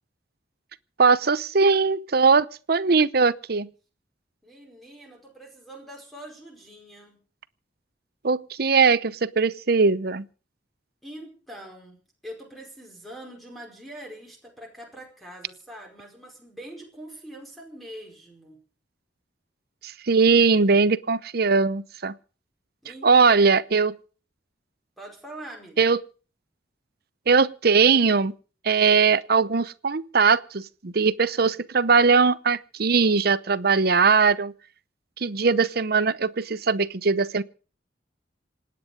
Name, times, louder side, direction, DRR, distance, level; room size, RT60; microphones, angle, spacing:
voice 1, 1.0-3.7 8.2-10.2 19.8-22.1 23.0-24.0 25.8-26.0 27.3-28.3 28.6-34.5 35.2-37.4, right 4 dB, 60° right, 0.8 m, -20 dB
voice 2, 4.4-7.2 11.0-12.0 12.2-18.6 22.8-23.1 25.0-25.8, right 1 dB, ahead, 4.8 m, -43 dB
27.0 x 9.5 x 5.1 m
head